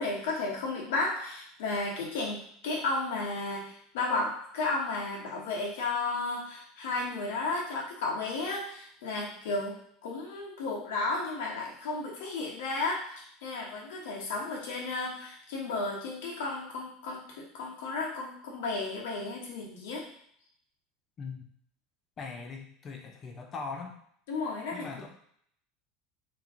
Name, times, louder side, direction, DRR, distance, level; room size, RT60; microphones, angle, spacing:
voice 1, 0.0-20.1 24.3-24.9, left 3 dB, 85° left, -2 dB, 1.1 m, -33 dB
voice 2, 21.2-21.5 22.2-24.0 24.7-25.1, left 4 dB, 25° left, 2 dB, 0.5 m, -40 dB
2.9 x 2.6 x 3.7 m, 0.65 s
supercardioid pair, 165°, 0 cm